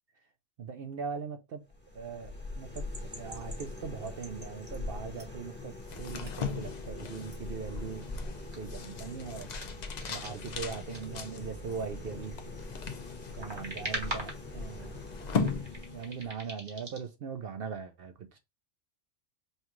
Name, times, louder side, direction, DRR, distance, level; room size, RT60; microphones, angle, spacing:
voice 1, 0.6-1.6 1.9-2.9 3.1-8.1 8.6-9.5 10.1-12.4 13.4-15.0 15.9-18.4, right 6 dB, 60° right, 0.6 m, -40 dB
sound 1, 1.7-16.3, left 2 dB, 10° left, 1.0 m, -43 dB
sound 2, 2.7-4.8 5.1-5.5 6.2-6.3 6.7-6.8 7.3-7.4 8.5-8.6 9.0-9.2 9.5-11.1 11.7-12.3 13.0-14.5 14.8-15.0 15.4-17.1, right 1 dB, 20° right, 1.0 m, -43 dB
sound 3, 5.8-16.4, left 5 dB, 55° left, 0.4 m, -39 dB
5.6 x 2.3 x 3.0 m
omnidirectional pair, 1.4 m